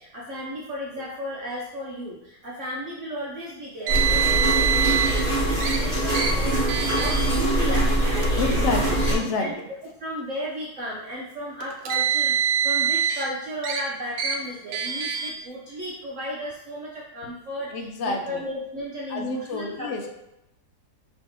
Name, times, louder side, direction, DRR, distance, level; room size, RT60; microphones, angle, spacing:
voice 1, 0.0-8.6 9.2-9.6 10.0-20.1, equal, 55° right, -5 dB, 0.9 m, -34 dB
sound 1, 3.9-9.1, right 1 dB, 45° left, 2.0 m, -23 dB
Car, 3.9-5.2 5.6-5.8 6.1-6.3 6.7-7.3 8.1-8.3 9.2-9.3 11.6-13.2 13.6-13.8 14.2-14.4 14.7-15.3, right 8 dB, 90° right, 1.2 m, -24 dB
voice 2, 8.4-9.6 17.7-18.4 19.1-20.0, left 3 dB, 60° left, 3 dB, 0.8 m, -29 dB
5.3 x 3.1 x 3.0 m, 0.86 s
omnidirectional pair, 1.8 m